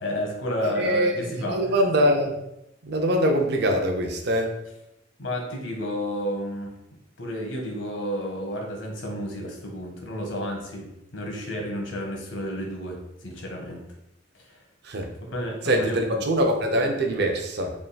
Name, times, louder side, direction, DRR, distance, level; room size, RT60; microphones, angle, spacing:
voice 1, 0.0-1.7 5.2-6.7 7.2-10.9 11.1-13.9 14.4-14.6 15.2-16.3, equal, 80° left, 1 dB, 1.0 m, -31 dB
voice 2, 0.6-2.4 2.8-4.5 14.8-15.1 15.6-17.7, equal, 60° right, 2 dB, 0.6 m, -23 dB
3.5 x 2.3 x 3.9 m, 0.85 s
head